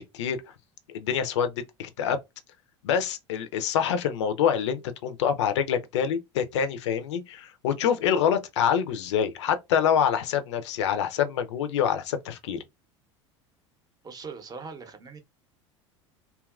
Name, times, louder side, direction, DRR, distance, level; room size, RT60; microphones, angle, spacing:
voice 1, 0.9-2.2 2.8-12.6, left 8 dB, 70° left, 0.5 m, -26 dB
voice 2, 14.0-15.2, right 5 dB, 25° right, 0.7 m, -41 dB
2.7 x 2.4 x 2.3 m
figure-of-eight pair, 75°, 16 cm